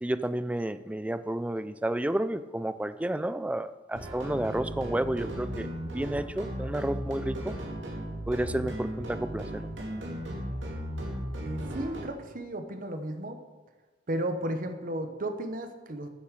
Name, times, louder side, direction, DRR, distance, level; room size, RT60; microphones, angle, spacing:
voice 1, 0.0-7.5 8.3-9.6, right 1 dB, 5° right, 13 dB, 0.3 m, -31 dB
sound 1, 3.9-12.1, equal, 70° right, 2.5 m, -36 dB
voice 2, 11.4-13.4 14.1-16.1, right 1 dB, 45° right, 7 dB, 1.0 m, -34 dB
9.6 x 7.0 x 6.7 m, 1.3 s
head